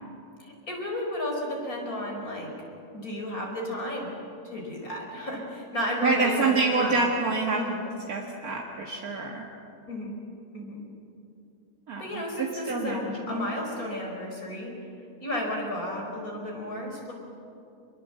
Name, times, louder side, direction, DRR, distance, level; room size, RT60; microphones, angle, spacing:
voice 1, 0.4-2.5 2.9-4.1 4.4-7.0 7.5-7.8 9.9-10.2 10.5-10.8 12.0-14.7 15.2-17.1, left 1 dB, 70° left, 0 dB, 5.4 m, -33 dB
voice 2, 6.0-7.6 8.1-9.4 11.9-13.5, right 3 dB, 75° right, -1 dB, 2.3 m, -27 dB
25.5 x 22.0 x 7.8 m, 2.6 s
omnidirectional pair, 1.6 m